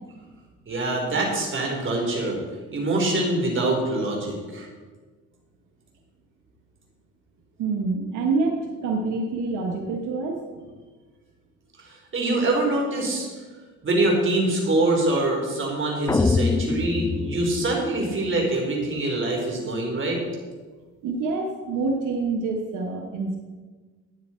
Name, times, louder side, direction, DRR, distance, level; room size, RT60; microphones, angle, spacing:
voice 1, 0.7-2.4 2.7-4.7 11.8-13.3 13.8-20.2, right 2 dB, 40° right, 0 dB, 3.9 m, -24 dB
voice 2, 7.6-10.7 21.0-23.4, right 3 dB, 90° right, 2 dB, 1.3 m, -27 dB
sound 1, 16.1-18.4, left 3 dB, 10° left, 0.3 m, -25 dB
13.0 x 9.1 x 4.4 m, 1.4 s
cardioid pair, 90°, 30 cm